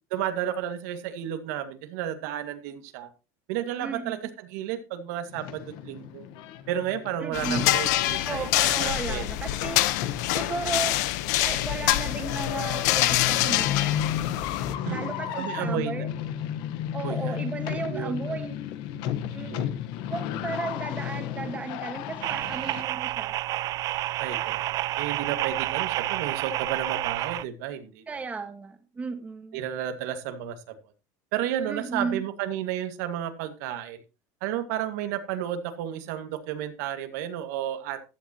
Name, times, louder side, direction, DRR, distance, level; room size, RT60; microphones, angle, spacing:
voice 1, 0.1-3.1 3.5-6.2 6.7-8.5 8.7-9.2 14.8-16.1 17.0-17.5 17.9-18.4 19.5-19.7 24.2-24.7 25.0-28.2 29.5-30.8 31.3-34.0 34.4-38.0, right 10 dB, 75° right, 7 dB, 2.0 m, -32 dB
voice 2, 3.8-4.2 7.2-7.7 8.2-9.8 10.3-10.9 11.4-14.2 14.9-16.1 16.9-18.6 19.3-19.8 20.1-23.4 25.4-25.5 28.1-29.6 31.7-32.2, right 4 dB, 15° right, 6 dB, 1.6 m, -34 dB
sound 1, 5.3-22.8, left 10 dB, 55° left, 1.2 m, -34 dB
sound 2, 7.3-14.7, left 15 dB, 75° left, 1.0 m, -26 dB
sound 3, 22.2-27.4, right 15 dB, 40° right, 0.5 m, -29 dB
15.0 x 10.5 x 3.0 m, 0.30 s
cardioid pair, 155°, 9 cm